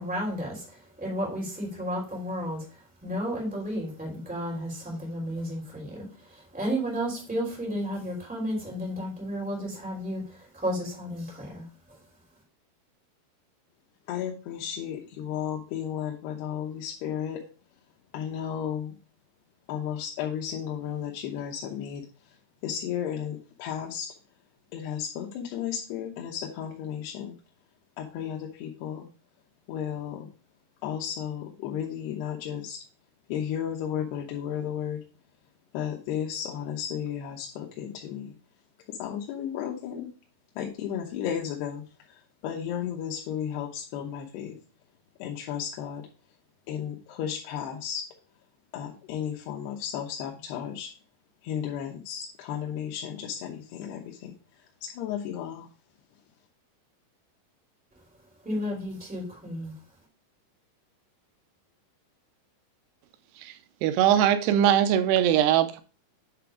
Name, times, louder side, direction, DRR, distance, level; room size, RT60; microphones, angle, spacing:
voice 1, 0.0-12.0 57.9-58.0 58.4-59.8, equal, 5° right, 2.3 m, -33 dB
voice 2, 14.1-17.4 18.1-18.9 19.7-22.0 22.6-24.1 24.7-27.3 28.0-29.1 29.7-30.3 30.8-32.8 33.3-35.0 35.7-38.3 39.0-40.1 40.6-41.8 42.4-44.6 45.2-46.1 46.7-48.0 48.7-50.9 51.4-54.3 54.8-55.7, left 9 dB, 90° left, 3.0 m, -33 dB
voice 3, 63.8-65.8, right 10 dB, 90° right, 2.7 m, -21 dB
8.8 x 3.4 x 4.9 m
omnidirectional pair, 4.5 m